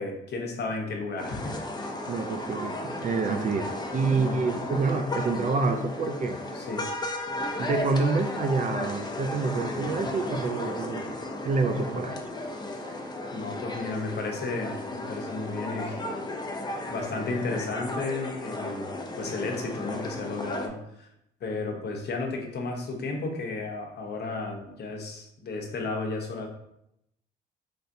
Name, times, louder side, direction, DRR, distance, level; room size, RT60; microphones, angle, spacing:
voice 1, 0.0-1.6 3.3-3.7 4.2-4.4 6.5-6.9 13.3-16.0 16.9-18.9 19.2-21.1 21.4-26.5, left 3 dB, 55° left, 2 dB, 0.9 m, -33 dB
sound 1, 1.2-20.7, left 2 dB, 20° left, 0.6 m, -34 dB
voice 2, 2.1-6.4 7.6-11.1 11.4-12.2, right 4 dB, 40° right, 7 dB, 0.4 m, -27 dB
4.1 x 3.3 x 2.6 m, 0.79 s
cardioid pair, 90°, 20 cm